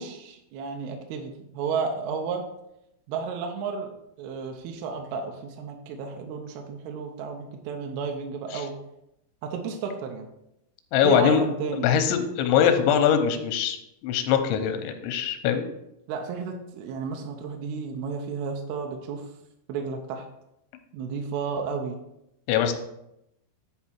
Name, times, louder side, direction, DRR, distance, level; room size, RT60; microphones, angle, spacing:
voice 1, 0.0-2.5 3.1-3.9 4.2-8.8 9.4-10.3 11.0-11.9 16.1-19.3 19.7-20.3 20.9-22.0, right 5 dB, 80° right, 3 dB, 2.3 m, -32 dB
voice 2, 10.9-11.4 11.7-13.8 14.0-15.7 22.5-22.7, left 8 dB, 80° left, 7 dB, 3.0 m, -22 dB
9.9 x 4.7 x 4.5 m, 0.83 s
omnidirectional pair, 5.4 m